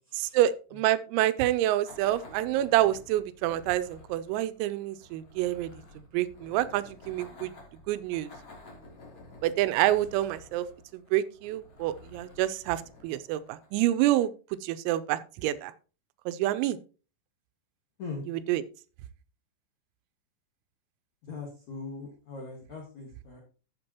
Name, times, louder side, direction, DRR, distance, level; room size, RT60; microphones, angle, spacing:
voice 1, 0.2-5.7 6.1-7.5 7.9-8.3 9.4-10.7 10.9-14.3 14.6-15.7 16.3-16.8 18.3-18.6, right 14 dB, 85° right, 14 dB, 3.4 m, -27 dB
sound 1, 1.8-14.0, left 2 dB, 30° left, 2.8 m, -51 dB
voice 2, 21.2-23.4, left 4 dB, 65° left, -1 dB, 1.8 m, -40 dB
13.0 x 7.4 x 2.9 m, 0.36 s
omnidirectional pair, 6.0 m